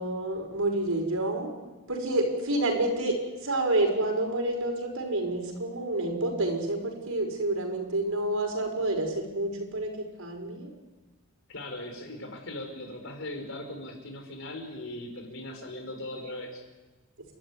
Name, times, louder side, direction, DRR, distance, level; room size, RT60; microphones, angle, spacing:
voice 1, 0.0-1.5 1.9-3.1 3.4-9.9 10.2-10.7, right 2 dB, 85° right, 2 dB, 5.6 m, -28 dB
voice 2, 11.5-16.6, left 1 dB, 65° left, 4 dB, 5.0 m, -39 dB
30.0 x 13.0 x 9.8 m, 1.2 s
head